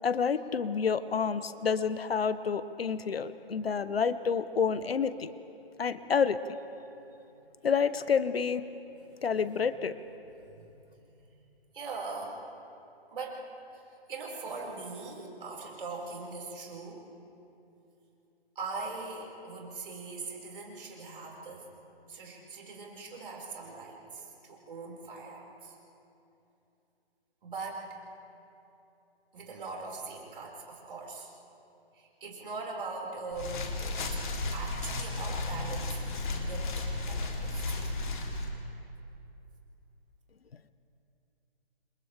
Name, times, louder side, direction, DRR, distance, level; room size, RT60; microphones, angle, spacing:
voice 1, 0.0-5.3 5.8-6.4 7.6-8.7 9.2-9.9, left 6 dB, 70° left, 14 dB, 0.9 m, -29 dB
voice 2, 7.3-7.6 9.0-9.6 10.4-10.7 11.1-11.3 11.7-12.4 13.1-17.1 18.5-21.7 22.1-25.8 27.4-28.0 29.3-31.3 31.9-34.2 34.5-38.1, right 3 dB, 55° right, -2 dB, 5.2 m, -41 dB
sound 1, 33.3-38.5, left 2 dB, 50° left, 3.1 m, -34 dB
29.0 x 27.0 x 3.4 m, 2.8 s
figure-of-eight pair, 140°, 32 cm